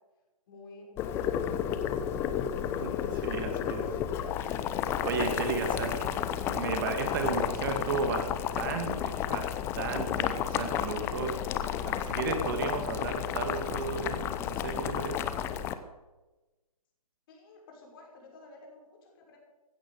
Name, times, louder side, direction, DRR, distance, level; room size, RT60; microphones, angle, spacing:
voice 1, 0.5-1.8 17.3-19.4, left 3 dB, 35° left, 0 dB, 5.9 m, -51 dB
Boiling, 1.0-15.7, left 10 dB, 10° left, 0.7 m, -32 dB
voice 2, 2.7-3.9 4.2-4.7 5.0-6.2 6.5-8.3 8.6-9.5 9.7-15.2, right 5 dB, 35° right, 5 dB, 2.0 m, -34 dB
15.5 x 12.0 x 7.0 m, 1.1 s
figure-of-eight pair, 140°, 19 cm